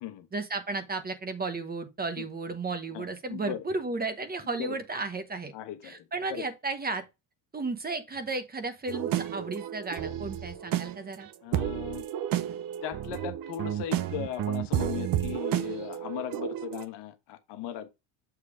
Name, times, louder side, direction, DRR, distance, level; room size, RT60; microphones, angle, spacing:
voice 1, 0.3-5.5 5.8-7.0 7.5-11.3, right 3 dB, 20° right, 1.0 m, -34 dB
voice 2, 2.9-3.6 4.5-4.8 5.5-6.5 11.4-12.0 12.8-17.9, left 10 dB, 60° left, 1.2 m, -38 dB
sound 1, 8.9-16.8, right 11 dB, 50° right, 0.8 m, -32 dB
7.0 x 3.3 x 4.8 m
supercardioid pair, 110°, 46 cm